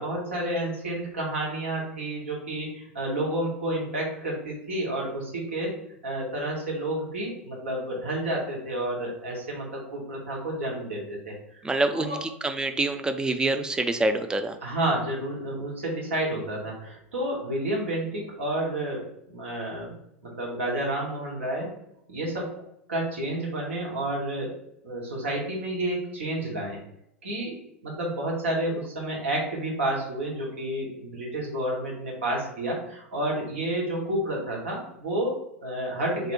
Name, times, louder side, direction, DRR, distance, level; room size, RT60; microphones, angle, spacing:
voice 1, 0.0-5.8 6.0-11.6 11.9-12.2 14.6-19.9 20.2-21.7 22.1-22.5 22.9-24.5 24.8-26.8 27.2-36.3, right 1 dB, 70° right, -2 dB, 1.6 m, -30 dB
voice 2, 11.6-14.6, right 2 dB, 10° right, 7 dB, 0.4 m, -26 dB
4.0 x 3.3 x 3.1 m, 0.77 s
figure-of-eight pair, 80°, 7 cm